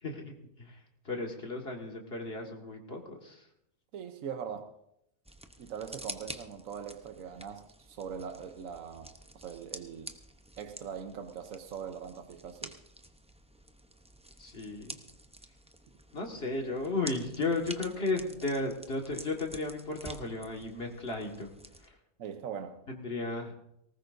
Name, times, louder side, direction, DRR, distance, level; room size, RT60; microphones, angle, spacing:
voice 1, 0.0-3.5 14.4-15.0 16.1-21.5 21.8-22.0 22.9-23.5, left 2 dB, 50° left, 1 dB, 2.0 m, -35 dB
voice 2, 3.9-4.7 5.6-10.2 10.6-12.7 22.2-22.8, right 7 dB, 85° right, 6 dB, 1.3 m, -41 dB
sound 1, 5.2-21.9, right 1 dB, 5° right, 0.5 m, -49 dB
19.5 x 18.5 x 2.6 m, 0.78 s
omnidirectional pair, 1.4 m